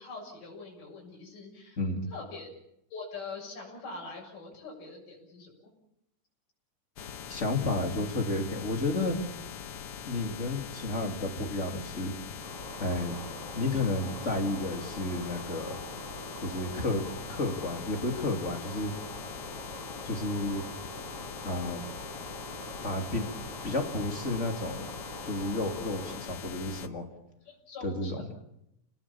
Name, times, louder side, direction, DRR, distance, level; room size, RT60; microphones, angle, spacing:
voice 1, 0.0-1.8 2.1-2.5 2.9-5.5 27.4-28.3, left 3 dB, 75° left, -2 dB, 8.6 m, -43 dB
voice 2, 1.8-2.1 7.3-9.2 10.1-12.1 12.8-13.2 13.5-15.8 16.4-17.0 17.3-18.9 20.0-20.6 21.4-21.8 22.8-23.3 23.6-24.9 25.2-27.0 27.8-28.2, left 2 dB, 20° left, 3 dB, 3.0 m, -31 dB
sound 1, 7.0-26.9, left 8 dB, 60° left, 1.8 m, -42 dB
sound 2, 12.4-26.2, right 2 dB, 70° right, 9.5 m, -45 dB
30.0 x 19.5 x 7.3 m, 0.81 s
omnidirectional pair, 3.7 m